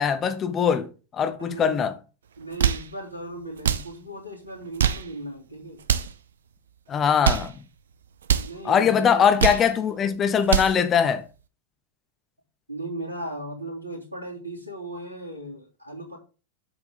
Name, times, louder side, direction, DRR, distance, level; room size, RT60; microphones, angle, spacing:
voice 1, 0.0-1.9 6.9-7.6 8.6-11.2, left 7 dB, 25° left, 1.0 m, -22 dB
voice 2, 1.4-1.9 2.4-5.8 8.4-9.3 12.7-16.2, right 1 dB, 85° right, 3.3 m, -37 dB
sound 1, 2.4-2.9 3.6-3.9 4.6-5.1 5.8-6.2 7.0-7.5 8.2-8.5 9.2-9.7 10.3-10.8, right 8 dB, 65° right, 0.7 m, -24 dB
7.8 x 7.3 x 3.8 m
figure-of-eight pair, 90°, 0 cm